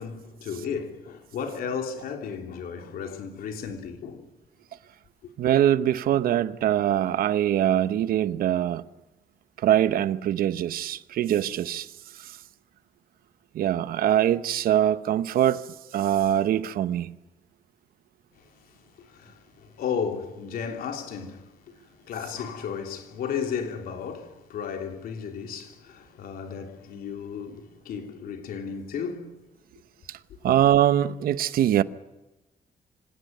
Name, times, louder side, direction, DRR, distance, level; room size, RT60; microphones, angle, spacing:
voice 1, 0.0-4.3 18.4-29.3, left 6 dB, 90° left, 3.3 m, -34 dB
voice 2, 5.4-8.8 9.6-12.4 13.5-15.6 15.9-17.2 30.1-30.2 30.4-31.8, right 11 dB, 85° right, 0.9 m, -23 dB
25.5 x 18.0 x 9.3 m
cardioid pair, 105°, 15 cm